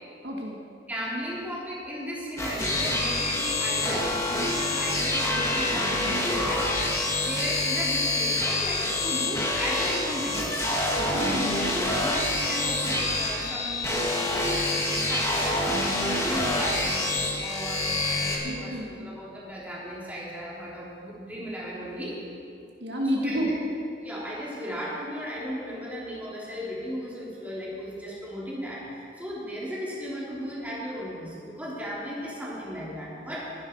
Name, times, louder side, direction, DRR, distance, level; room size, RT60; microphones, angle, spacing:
voice 1, 0.2-0.6 11.0-11.7 18.4-19.1 22.8-23.7, equal, 65° right, -1 dB, 1.8 m, -30 dB
voice 2, 0.9-6.6 7.2-10.4 11.8-17.0 17.4-22.2 23.0-23.4 24.0-33.5, equal, 10° right, -6 dB, 3.5 m, -36 dB
sound 1, 2.4-18.3, left 2 dB, 15° left, 1.9 m, -27 dB
22.0 x 11.0 x 4.7 m, 2.5 s
head